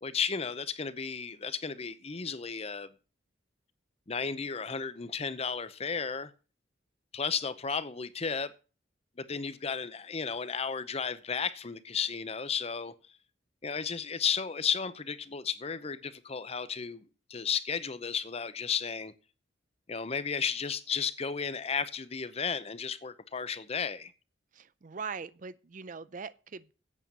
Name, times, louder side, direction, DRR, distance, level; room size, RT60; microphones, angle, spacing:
voice 1, 0.0-2.9 4.1-6.3 7.1-8.5 9.2-12.9 13.6-17.0 17.3-19.1 19.9-24.1, left 6 dB, 35° left, 0.7 m, -33 dB
voice 2, 24.5-26.7, right 5 dB, 45° right, 0.5 m, -41 dB
8.4 x 7.0 x 7.3 m
head